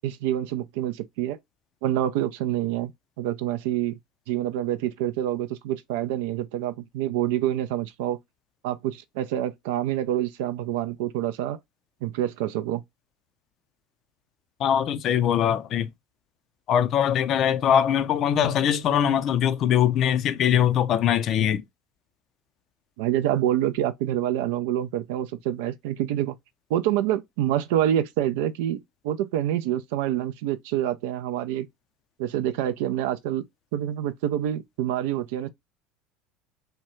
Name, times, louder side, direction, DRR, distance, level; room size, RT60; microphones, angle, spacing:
voice 1, 0.0-1.4 1.8-2.9 3.2-4.0 4.3-8.2 8.6-11.6 12.0-12.8 23.0-26.4 26.7-31.7 32.2-33.4 33.7-35.5, right 12 dB, 70° right, 0.4 m, -27 dB
voice 2, 14.6-15.9 16.7-21.6, left 9 dB, 50° left, 0.4 m, -22 dB
2.8 x 2.2 x 3.0 m
hypercardioid pair, 75°, 0 cm